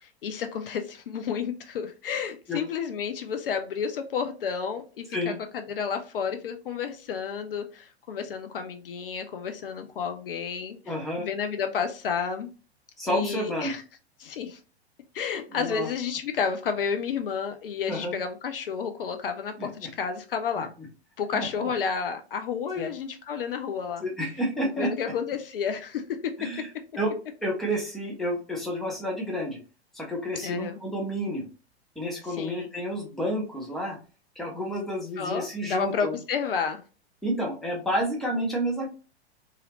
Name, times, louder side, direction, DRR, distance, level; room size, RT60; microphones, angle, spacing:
voice 1, 0.0-12.5 13.1-13.8 14.2-14.6 15.1-20.7 21.2-24.0 24.6-26.3 30.4-30.8 32.3-32.7 35.2-36.8, left 6 dB, 55° left, 7 dB, 0.5 m, -31 dB
voice 2, 10.8-11.3 13.0-13.7 15.5-15.9 17.9-18.2 19.6-19.9 20.5-20.7 21.3-21.7 22.7-22.9 24.0-25.1 26.4-26.7 27.0-27.1 27.4-29.6 29.9-31.4 32.0-34.0 34.4-36.1 37.2-38.9, equal, ahead, -2 dB, 0.6 m, -30 dB
2.7 x 2.5 x 2.9 m, 0.34 s
figure-of-eight pair, 100°, 33 cm